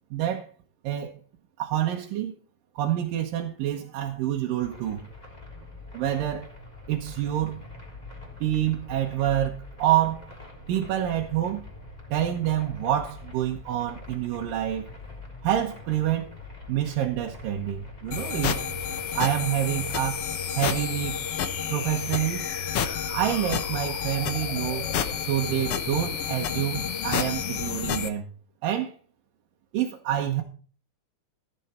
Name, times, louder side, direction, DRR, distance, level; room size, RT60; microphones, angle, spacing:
voice 1, 0.1-0.5 0.8-1.2 1.6-2.3 2.8-5.0 5.9-6.5 6.9-7.6 8.4-10.3 10.7-11.6 12.1-14.9 15.4-16.3 16.7-18.7 19.1-20.3 20.6-21.3 21.7-22.4 23.1-24.9 25.2-28.3 28.6-28.9 29.7-30.4, right 12 dB, 85° right, 2.8 m, -27 dB
sound 1, 4.6-21.9, left 3 dB, 10° left, 3.1 m, -44 dB
sound 2, 18.1-28.1, left 7 dB, 65° left, 1.5 m, -30 dB
14.0 x 9.2 x 4.4 m
omnidirectional pair, 3.8 m